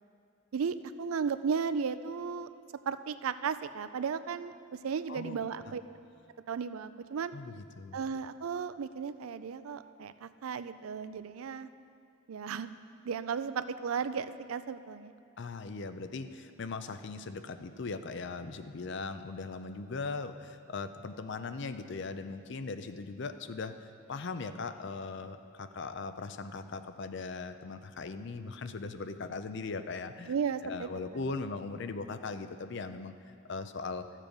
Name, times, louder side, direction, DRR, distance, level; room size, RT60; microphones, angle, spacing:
voice 1, 0.5-2.5 2.9-5.8 6.5-7.3 7.9-11.7 12.3-12.7 13.0-15.1 30.3-30.9, right 6 dB, 85° right, 13 dB, 0.4 m, -35 dB
voice 2, 7.3-8.0 15.4-30.3 30.6-33.1 33.5-34.0, left 4 dB, 55° left, 10 dB, 0.5 m, -39 dB
13.5 x 7.4 x 5.2 m, 2.4 s
head